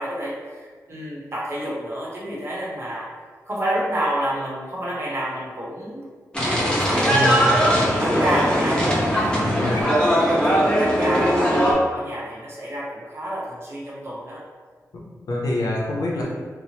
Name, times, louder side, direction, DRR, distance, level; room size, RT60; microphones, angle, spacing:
voice 1, 0.0-3.1 3.5-6.1 6.4-10.0 10.3-11.6 11.9-14.4 16.3-16.4, right 1 dB, 45° right, -6 dB, 0.8 m, -29 dB
sound 1, 6.3-11.7, equal, 15° left, 0.6 m, -20 dB
voice 2, 7.1-7.6 9.4-9.8 14.9-16.3, left 1 dB, 80° left, -4 dB, 0.6 m, -26 dB
2.9 x 2.0 x 2.7 m, 1.5 s
wide cardioid pair, 100°, 6 cm